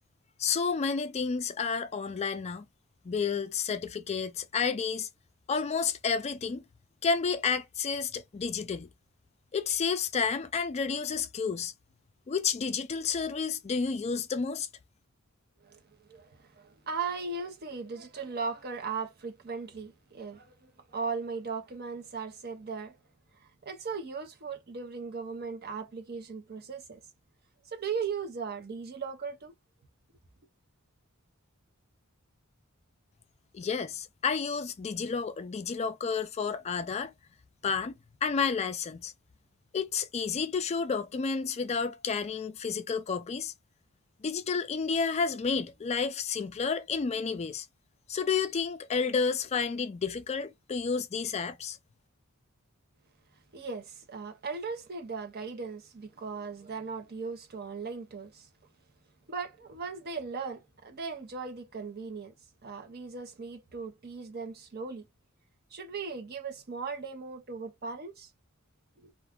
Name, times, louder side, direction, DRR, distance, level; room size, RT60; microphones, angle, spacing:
voice 1, 0.4-2.7 3.1-5.1 5.5-6.6 7.0-8.9 9.5-11.7 12.3-14.7 33.5-37.1 37.6-39.1 39.7-43.5 44.2-47.7 48.1-51.8, left 5 dB, 30° left, 0.3 m, -30 dB
voice 2, 15.6-23.0 23.4-27.0 27.7-29.5 53.5-58.5 59.3-62.3 62.6-65.0 65.7-68.3 69.0-69.1, right 5 dB, 45° right, 0.7 m, -38 dB
2.5 x 2.3 x 3.5 m
head